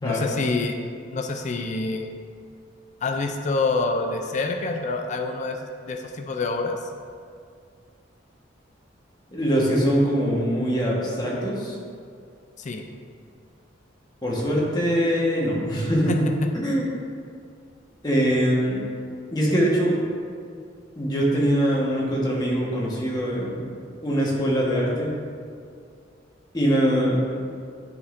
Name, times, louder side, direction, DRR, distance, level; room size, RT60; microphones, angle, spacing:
voice 1, 0.0-0.8 1.1-2.1 3.0-6.8 12.6-12.9 16.1-16.5, left 3 dB, 40° left, 4 dB, 0.4 m, -27 dB
voice 2, 9.3-11.7 14.2-16.3 16.5-16.9 18.0-18.9 19.3-20.0 21.0-23.7 24.0-25.1 26.5-27.2, equal, 20° left, -5 dB, 1.3 m, -22 dB
9.5 x 5.2 x 2.6 m, 2.2 s
head